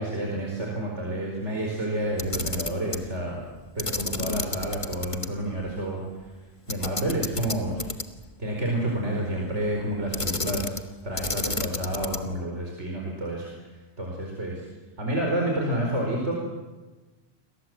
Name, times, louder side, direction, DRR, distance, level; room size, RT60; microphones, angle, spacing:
voice 1, 0.0-3.4 3.8-6.3 6.7-7.9 8.4-13.5 14.0-14.7 15.0-16.3, right 1 dB, 90° right, -1 dB, 5.2 m, -29 dB
Camera, 2.1-3.1 3.8-5.3 5.6-5.7 6.7-8.3 10.1-10.9 11.1-12.4, left 3 dB, 30° left, 1.4 m, -31 dB
29.0 x 22.0 x 7.9 m, 1.2 s
omnidirectional pair, 1.2 m